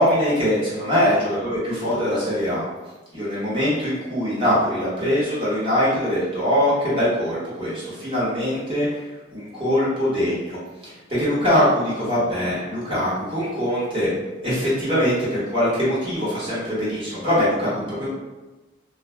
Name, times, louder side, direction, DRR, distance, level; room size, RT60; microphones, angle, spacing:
voice 1, 0.0-2.6 3.1-9.0 9.3-10.6 10.8-14.1 14.4-18.1, equal, 25° right, -9 dB, 1.1 m, -22 dB
2.3 x 2.2 x 3.1 m, 1.1 s
head